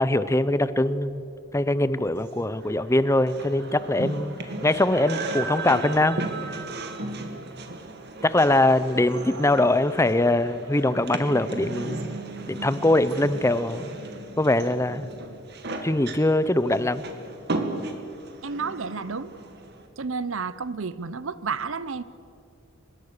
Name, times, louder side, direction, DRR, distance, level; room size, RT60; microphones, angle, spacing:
voice 1, 0.0-4.3 4.6-6.2 8.2-12.2 12.5-14.0 14.4-15.1 15.8-17.0, left 1 dB, 15° left, 15 dB, 0.6 m, -22 dB
sound 1, 2.3-19.9, right 2 dB, 55° right, 1.9 m, -35 dB
voice 2, 18.4-19.4 20.0-22.0, right 5 dB, 70° right, 16 dB, 0.8 m, -31 dB
24.5 x 21.0 x 6.7 m, 2.6 s
head